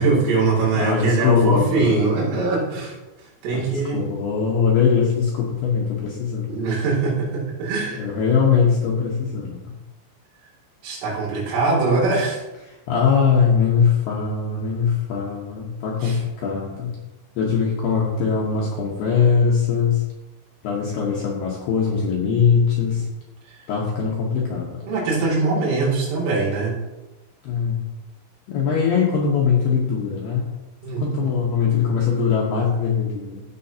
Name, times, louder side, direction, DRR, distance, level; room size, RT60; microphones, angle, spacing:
voice 1, 0.0-2.9 3.4-4.0 6.5-8.1 10.8-12.4 16.0-16.2 23.5-23.6 24.9-26.7 30.8-31.0, right 3 dB, 75° right, -5 dB, 5.1 m, -22 dB
voice 2, 0.8-2.4 3.5-3.6 3.9-6.5 8.0-9.7 12.6-16.9 17.4-20.0 20.6-23.1 23.7-24.8 27.4-27.9 28.5-30.4 31.0-33.4, left 6 dB, 70° left, -3 dB, 2.5 m, -21 dB
14.5 x 6.7 x 2.8 m, 1.1 s
omnidirectional pair, 6.0 m